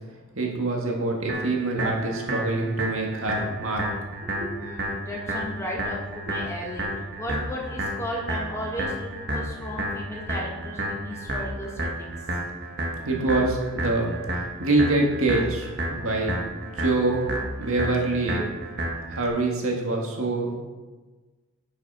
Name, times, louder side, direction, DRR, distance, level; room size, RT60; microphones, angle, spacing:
voice 1, 0.3-3.9 4.2-4.5 13.0-14.2 14.6-16.4 16.8-17.2 17.6-18.5 19.1-20.6, right 2 dB, 70° right, 0 dB, 1.8 m, -25 dB
sound 1, 1.3-19.3, right 1 dB, 50° right, 1.4 m, -31 dB
voice 2, 4.5-6.9 7.2-12.2, equal, 15° left, -3 dB, 1.7 m, -35 dB
9.0 x 6.2 x 5.5 m, 1.3 s
head